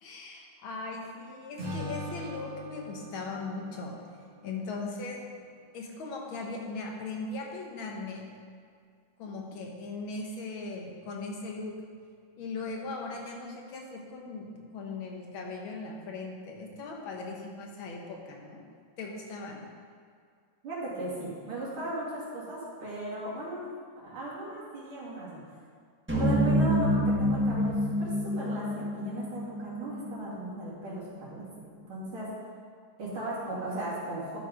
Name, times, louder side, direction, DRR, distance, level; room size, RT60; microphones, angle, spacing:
voice 1, 0.0-4.0 4.4-5.2 5.7-8.3 9.2-11.7 12.4-18.6 19.0-19.6, left 3 dB, 70° left, 0 dB, 1.9 m, -39 dB
Acoustic guitar / Strum, 1.6-4.9, left 1 dB, 35° right, 2.0 m, -41 dB
voice 2, 20.6-23.7 24.0-25.4 26.2-32.3 33.0-34.4, right 1 dB, 70° right, -9 dB, 3.4 m, -37 dB
sound 1, 26.1-30.4, equal, 10° right, 0.7 m, -27 dB
12.0 x 4.7 x 5.0 m, 2.1 s
omnidirectional pair, 2.4 m